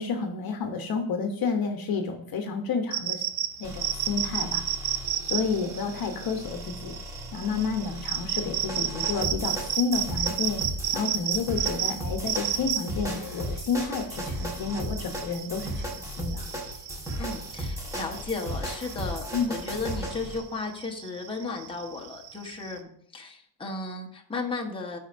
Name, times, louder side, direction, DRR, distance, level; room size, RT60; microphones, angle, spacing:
voice 1, 0.0-3.2 3.6-4.6 5.2-7.0 7.3-10.6 10.9-16.5 19.3-19.5, left 5 dB, 45° left, 5 dB, 1.0 m, -30 dB
sound 1, 2.9-22.8, right 11 dB, 80° right, 0.8 m, -32 dB
sound 2, 3.6-20.4, equal, 5° right, 1.6 m, -36 dB
voice 2, 17.2-25.0, left 3 dB, 10° left, 1 dB, 1.1 m, -35 dB
12.5 x 4.5 x 2.6 m, 0.67 s
cardioid pair, 115°, 49 cm